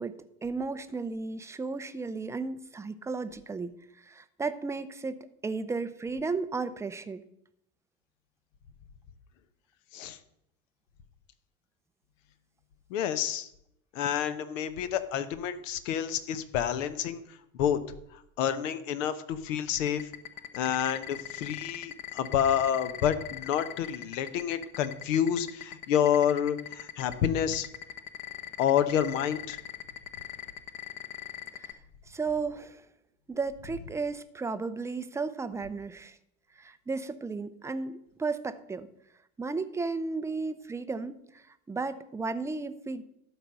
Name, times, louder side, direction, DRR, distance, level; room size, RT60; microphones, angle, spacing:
voice 1, 0.0-7.2 31.6-31.7 32.1-32.8 33.3-36.2 36.6-38.9 39.4-43.0, right 4 dB, 5° right, 12 dB, 0.5 m, -34 dB
voice 2, 12.9-13.5 13.9-17.2 17.5-17.8 18.1-20.1 20.5-27.7 28.6-29.6, left 9 dB, 65° left, 11 dB, 1.1 m, -28 dB
sound 1, 19.8-31.7, left 10 dB, 45° left, 1.3 m, -39 dB
12.5 x 4.9 x 6.6 m, 0.77 s
figure-of-eight pair, 80°, 42 cm